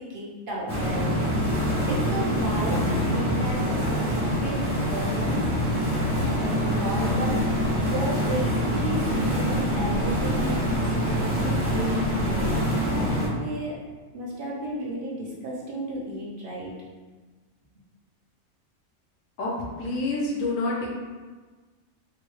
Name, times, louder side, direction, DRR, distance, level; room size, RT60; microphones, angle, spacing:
voice 1, 0.0-1.6 1.9-5.8 6.4-7.4 7.8-10.6 11.0-12.5 12.9-13.8 14.1-16.7, right 1 dB, 50° right, -5 dB, 0.8 m, -33 dB
sound 1, 0.7-13.3, equal, 20° right, 0.4 m, -25 dB
voice 2, 19.4-20.9, left 2 dB, 70° left, -3 dB, 1.1 m, -28 dB
3.7 x 2.2 x 3.1 m, 1.3 s
omnidirectional pair, 1.4 m